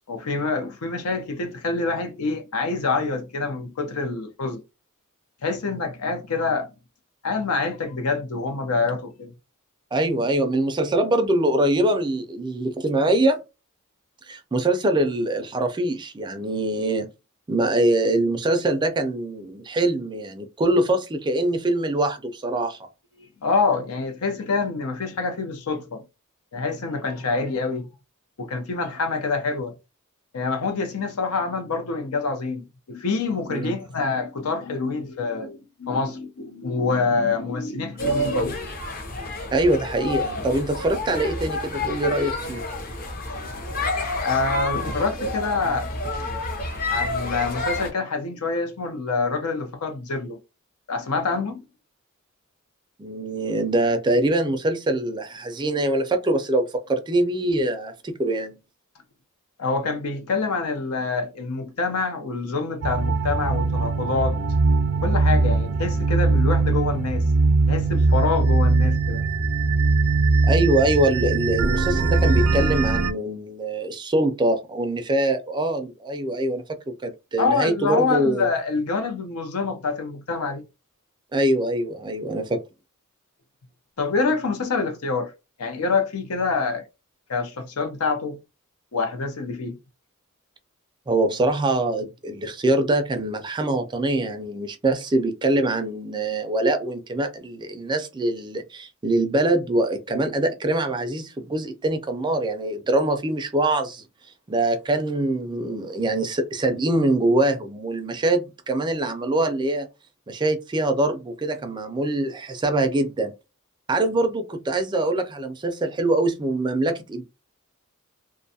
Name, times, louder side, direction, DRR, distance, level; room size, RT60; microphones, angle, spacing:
voice 1, 0.1-4.6 5.4-6.7 7.2-9.3 23.2-26.0 26.5-27.9 28.4-29.7 30.3-38.6 39.1-39.2 44.2-45.9 46.9-50.4 50.9-51.6 59.6-64.4 65.0-67.3 67.7-69.2 77.4-80.6 84.0-85.3 85.6-86.8 87.3-88.4 88.9-89.8, left 4 dB, 85° left, 0.6 m, -26 dB
voice 2, 9.9-13.4 14.3-17.1 17.5-22.8 33.5-33.7 39.5-42.6 53.0-58.6 70.5-78.5 81.3-82.6 91.1-104.0 104.5-109.9 110.3-113.3 113.9-117.2, right 1 dB, 20° right, 0.3 m, -23 dB
sound 1, 38.0-47.9, left 2 dB, 40° left, 0.6 m, -29 dB
sound 2, 62.8-73.1, right 3 dB, 85° right, 0.4 m, -21 dB
2.5 x 2.3 x 2.7 m
head